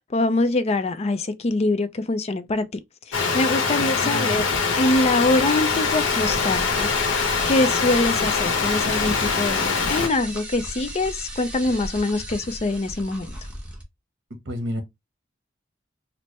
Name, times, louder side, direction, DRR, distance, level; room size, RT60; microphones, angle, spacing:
voice 1, 0.0-2.7 3.1-4.5 4.8-6.9 7.5-13.3, left 2 dB, 35° left, 0.4 m, -24 dB
sound 1, 3.1-10.1, left 5 dB, 80° left, 0.9 m, -23 dB
voice 2, 4.0-4.3 14.4-14.8, equal, 65° right, 1.1 m, -29 dB
sound 2, 4.7-13.8, right 1 dB, 5° right, 1.0 m, -36 dB
4.4 x 2.0 x 3.0 m
head